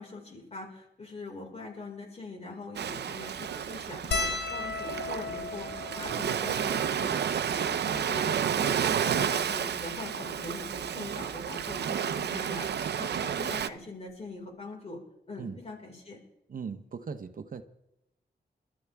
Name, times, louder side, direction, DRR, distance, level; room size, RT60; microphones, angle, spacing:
voice 1, 0.0-15.0 15.3-16.2, left 2 dB, 40° left, 0 dB, 5.1 m, -42 dB
Ocean, 2.8-13.7, right 8 dB, 85° right, 0.7 m, -31 dB
sound 1, 4.1-8.7 9.5-9.6 9.7-9.9 11.2-11.4 12.9-13.0 13.2-13.4, left 4 dB, 90° left, 1.2 m, -37 dB
voice 2, 16.5-17.6, right 6 dB, 55° right, 9 dB, 0.9 m, -39 dB
27.5 x 13.5 x 3.6 m, 0.84 s
wide cardioid pair, 135°, 17 cm